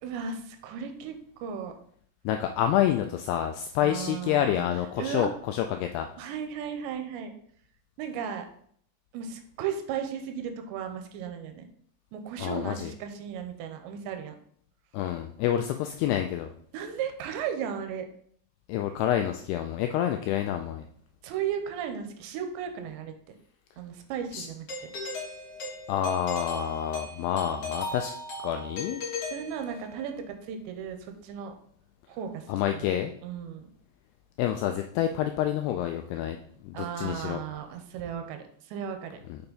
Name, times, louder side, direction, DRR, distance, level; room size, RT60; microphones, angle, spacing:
voice 1, 0.0-1.7 3.8-4.6 5.0-5.3 6.2-7.3 8.0-8.5 9.1-11.7 12.1-14.4 16.7-18.1 21.2-23.1 23.8-24.9 29.2-31.5 32.1-32.5 32.7-32.9 33.2-33.7 36.7-39.2, right 8 dB, 90° right, 6 dB, 3.0 m, -35 dB
voice 2, 2.3-6.1 12.4-12.9 14.9-16.5 18.7-20.9 24.3-24.5 25.9-28.1 28.4-29.0 32.5-33.1 34.4-36.4 36.6-37.4 39.3-39.4, left 10 dB, 85° left, 6 dB, 2.3 m, -28 dB
Doorbell, 24.7-30.1, left 2 dB, 55° left, 2.6 m, -37 dB
7.0 x 5.8 x 4.0 m, 0.62 s
omnidirectional pair, 5.1 m